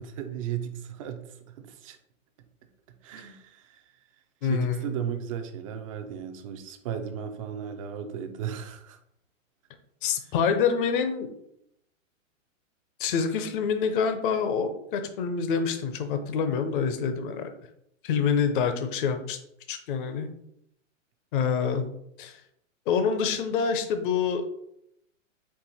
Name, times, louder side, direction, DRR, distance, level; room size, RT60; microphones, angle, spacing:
voice 1, 0.0-2.0 3.0-4.0 4.4-9.0, right 9 dB, 25° right, 7 dB, 0.4 m, -35 dB
voice 2, 4.4-5.0 10.0-11.3 13.0-17.5 18.0-19.4 19.7-20.3 21.3-21.9 22.2-22.4 22.9-24.7, left 6 dB, 40° left, 8 dB, 0.7 m, -26 dB
4.7 x 2.5 x 4.2 m, 0.75 s
hypercardioid pair, 135°, 39 cm